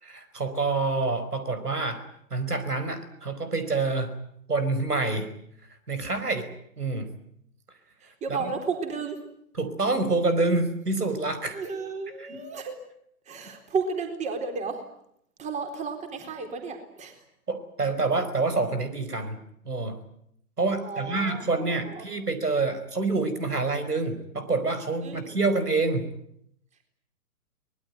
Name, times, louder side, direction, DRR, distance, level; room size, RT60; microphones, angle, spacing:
voice 1, 0.0-2.0 2.3-4.2 4.5-5.3 5.9-6.5 6.8-7.1 8.3-8.5 9.6-11.6 12.2-12.4 17.5-19.4 19.6-20.0 20.6-26.1, right 3 dB, 80° right, 11 dB, 4.9 m, -27 dB
voice 2, 8.0-9.2 11.5-12.8 13.3-14.8 15.4-17.2 20.8-22.1 25.0-25.4, right 4 dB, 15° right, 6 dB, 4.0 m, -33 dB
24.0 x 20.5 x 9.4 m, 0.71 s
figure-of-eight pair, 125°, 45 cm